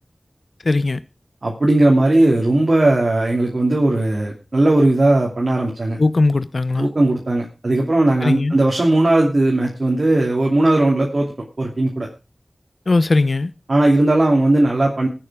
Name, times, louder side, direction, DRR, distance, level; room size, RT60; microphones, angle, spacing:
voice 1, 0.6-1.0 6.0-6.9 8.2-8.6 12.9-13.5, left 3 dB, 80° left, 0.7 m, -18 dB
voice 2, 1.4-6.0 6.8-11.3 11.6-12.1 13.7-15.1, right 2 dB, 70° right, 2.8 m, -17 dB
20.5 x 9.0 x 3.6 m
wide cardioid pair, 40°, 0 cm